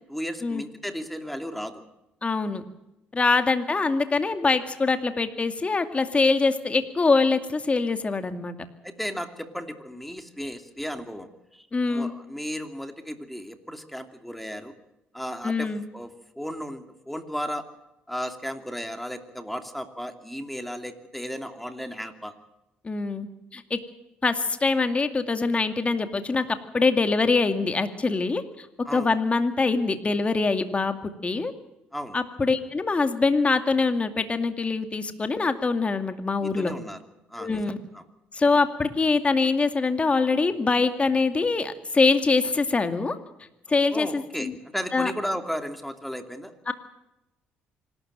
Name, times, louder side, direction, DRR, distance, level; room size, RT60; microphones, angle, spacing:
voice 1, 0.1-1.8 8.8-14.7 15.1-17.6 18.1-22.3 28.8-29.2 31.9-32.2 36.4-37.0 37.3-38.0 43.9-46.5, equal, 5° left, 7 dB, 2.7 m, -35 dB
voice 2, 2.2-2.6 3.1-8.5 11.7-12.1 15.4-15.8 22.8-23.8 24.2-26.4 26.7-28.7 28.9-31.5 32.1-36.7 37.4-37.8 38.3-43.2 43.7-44.5 44.9-45.1 46.7-46.8, left 4 dB, 30° left, 8 dB, 2.3 m, -24 dB
25.5 x 13.0 x 9.0 m, 0.88 s
supercardioid pair, 65°, 4 cm